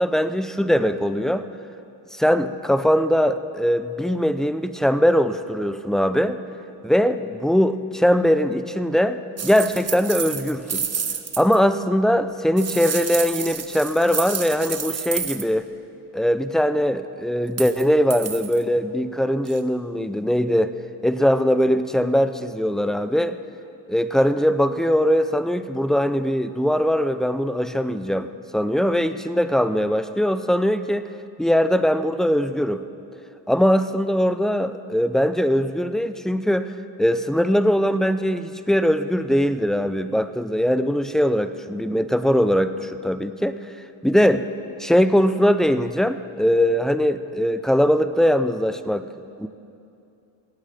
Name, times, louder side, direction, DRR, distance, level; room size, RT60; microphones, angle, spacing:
voice 1, 0.0-1.5 2.1-6.4 6.8-10.9 11.4-15.7 16.1-20.7 21.0-23.4 23.9-28.3 28.5-31.0 31.4-32.8 33.5-36.7 37.0-43.5 44.0-44.5 44.8-49.1 49.4-49.5, equal, ahead, 11 dB, 0.6 m, -21 dB
sound 1, 9.4-11.6 12.6-15.4 17.5-17.8 18.1-18.6 19.5-19.6, right 6 dB, 30° right, 1.1 m, -29 dB
17.0 x 8.1 x 9.1 m, 2.7 s
supercardioid pair, 75°, 50 cm